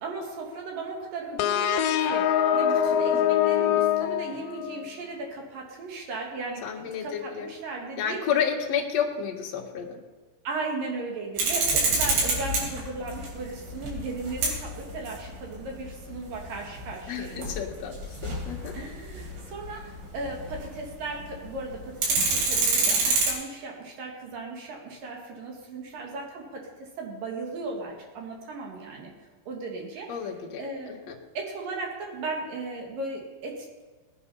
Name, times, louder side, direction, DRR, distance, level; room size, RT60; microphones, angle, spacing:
voice 1, 0.0-2.3 2.5-8.2 10.4-17.5 18.7-29.1 29.5-30.1 30.6-30.9 31.3-33.8, right 3 dB, 60° right, 0 dB, 3.1 m, -36 dB
sound 1, 1.4-4.9, left 10 dB, 85° left, 3.0 m, -24 dB
voice 2, 6.6-7.5 8.0-10.0 17.1-18.7 30.1-30.6 30.9-31.1, left 7 dB, 55° left, -1 dB, 2.1 m, -31 dB
sound 2, 11.4-20.9 21.2-21.3 21.6-23.3, right 3 dB, 85° right, 5.6 m, -27 dB
18.0 x 9.3 x 5.5 m, 1.3 s
omnidirectional pair, 5.1 m